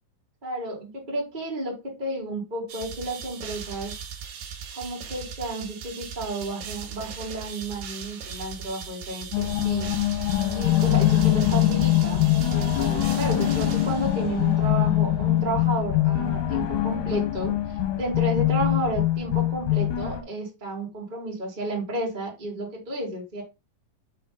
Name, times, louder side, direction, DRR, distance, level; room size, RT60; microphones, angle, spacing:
voice 1, 0.4-3.9 4.7-9.9 10.5-23.4, right 2 dB, 20° right, -3 dB, 1.3 m, -32 dB
sound 1, 2.7-14.6, right 7 dB, 75° right, 3.1 m, -39 dB
sound 2, 9.3-20.2, left 13 dB, 65° left, 2.4 m, -23 dB
5.7 x 5.4 x 4.0 m, 0.27 s
omnidirectional pair, 4.6 m